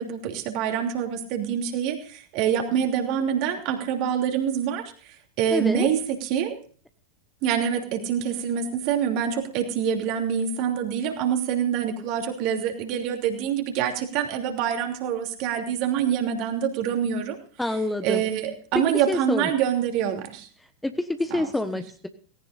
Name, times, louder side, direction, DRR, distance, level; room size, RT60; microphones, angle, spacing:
voice 1, 0.0-4.8 5.4-6.6 7.4-17.4 18.0-20.5 21.3-21.4, right 8 dB, 45° right, 4 dB, 3.0 m, -26 dB
voice 2, 5.5-5.9 17.6-18.2 18.7-19.5 20.8-22.1, left 1 dB, 5° left, 8 dB, 1.2 m, -27 dB
18.5 x 17.0 x 2.6 m, 0.42 s
figure-of-eight pair, 90°, 0 cm